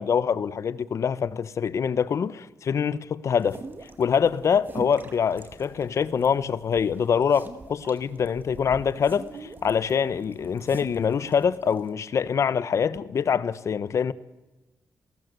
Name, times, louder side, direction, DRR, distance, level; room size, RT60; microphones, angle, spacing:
voice 1, 0.0-3.6 4.0-14.1, left 7 dB, 55° left, 1.0 m, -25 dB
sound 1, 3.4-11.9, right 3 dB, 35° right, 2.1 m, -44 dB
29.5 x 18.5 x 8.1 m
wide cardioid pair, 145°, 6 cm